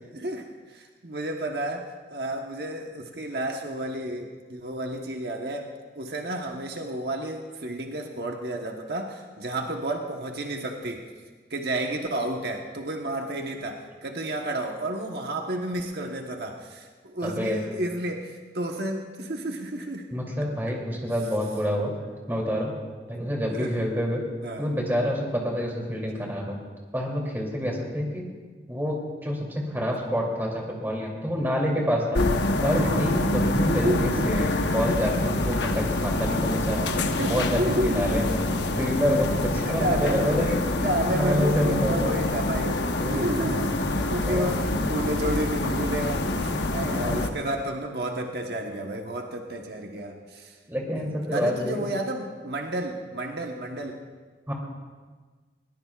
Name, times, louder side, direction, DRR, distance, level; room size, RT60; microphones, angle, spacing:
voice 1, 0.1-11.1 11.5-20.1 23.5-23.9 24.4-24.7 26.1-26.3 32.8-34.3 37.2-38.2 39.6-43.8 44.1-50.6 51.3-54.0, right 1 dB, 70° right, 2 dB, 1.1 m, -31 dB
voice 2, 17.2-17.6 20.1-21.9 22.3-22.7 23.1-24.2 24.6-26.6 26.9-28.3 28.7-32.2 32.6-36.9 37.3-38.4 38.8-42.2 43.0-43.3 44.2-44.5 46.8-47.2 50.7-51.9 54.5-54.6, equal, 10° right, -2 dB, 2.8 m, -27 dB
sound 1, 32.1-47.3, left 2 dB, 90° left, 1.0 m, -26 dB
21.5 x 18.5 x 2.4 m, 1.4 s
head